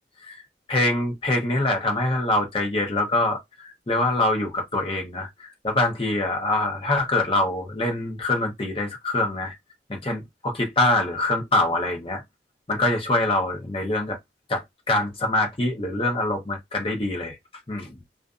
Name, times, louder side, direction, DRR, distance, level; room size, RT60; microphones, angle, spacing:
voice 1, 0.7-3.4 3.9-9.5 9.9-12.2 12.7-14.2 14.5-17.4 17.7-17.9, left 2 dB, 30° left, 0.7 m, -24 dB
2.5 x 2.4 x 2.4 m
head